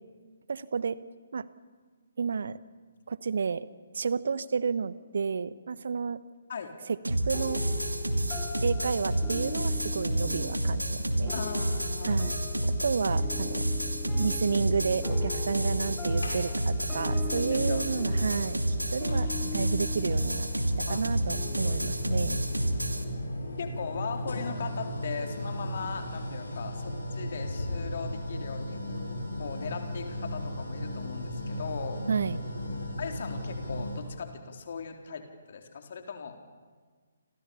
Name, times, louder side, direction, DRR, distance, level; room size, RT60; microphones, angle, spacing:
voice 1, 0.5-1.0 1.3-1.5 2.2-2.6 3.1-3.7 3.9-6.2 6.9-7.6 8.6-11.3 12.0-12.3 12.8-13.6 14.2-20.5 20.9-22.4 32.1-32.4, right 5 dB, 55° right, 17 dB, 1.1 m, -31 dB
sound 1, 7.0-23.0, right 1 dB, 80° right, 2.6 m, -30 dB
sound 2, 7.3-24.1, left 4 dB, 15° left, 3.4 m, -42 dB
voice 2, 11.3-12.2 17.3-17.9 20.9-21.0 23.6-28.8 29.4-32.0 33.0-36.4, left 6 dB, 45° left, 4 dB, 3.9 m, -38 dB
sound 3, 16.2-16.8 18.2-18.3 19.1-34.1, left 1 dB, 65° left, 6.7 m, -36 dB
30.0 x 26.5 x 7.0 m, 1.5 s
figure-of-eight pair, 135°, 0 cm